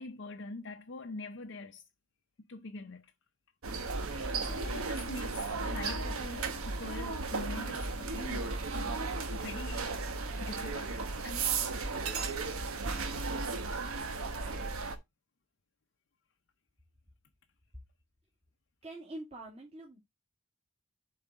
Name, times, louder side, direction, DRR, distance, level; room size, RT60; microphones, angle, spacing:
voice 1, 0.0-1.8 2.5-3.0 4.1-10.0 10.4-10.9 11.2-11.7, left 3 dB, 55° left, 0.6 m, -44 dB
sound 1, 3.6-15.0, right 4 dB, 90° right, 1.1 m, -35 dB
voice 2, 18.8-20.0, right 2 dB, 30° right, 2.3 m, -45 dB
7.2 x 4.7 x 3.8 m
head